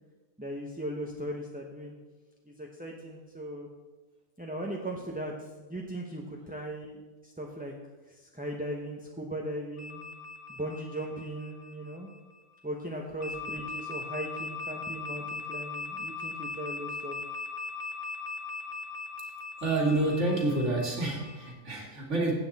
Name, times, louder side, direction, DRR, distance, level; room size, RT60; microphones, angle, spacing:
voice 1, 0.4-1.9 2.5-3.7 4.4-7.7 8.1-10.0 10.5-12.1 12.6-17.2, right 1 dB, 5° right, 0 dB, 0.9 m, -38 dB
sound 1, 9.8-12.3 13.2-21.5, left 3 dB, 35° left, 2.2 m, -40 dB
voice 2, 19.6-22.3, right 2 dB, 55° right, -2 dB, 2.8 m, -28 dB
15.5 x 8.8 x 4.2 m, 1.2 s
omnidirectional pair, 1.4 m